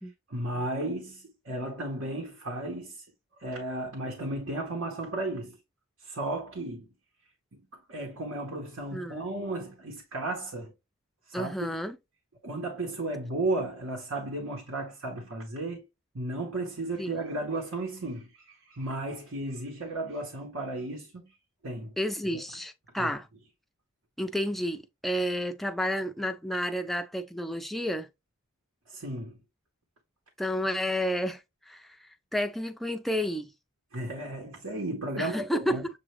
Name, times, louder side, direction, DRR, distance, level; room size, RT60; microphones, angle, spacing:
voice 1, 0.3-3.0 3.4-5.6 6.0-6.9 7.5-10.7 11.3-11.7 12.4-15.8 16.1-21.3 21.6-22.0 22.3-22.4 23.0-23.1 28.9-29.4 33.9-35.8, right 2 dB, 80° right, 1.1 m, -34 dB
voice 2, 8.9-9.2 11.3-12.0 17.0-17.2 22.0-23.3 24.2-28.1 30.4-33.5 35.2-35.9, equal, ahead, 0.3 m, -31 dB
6.9 x 2.4 x 3.2 m
head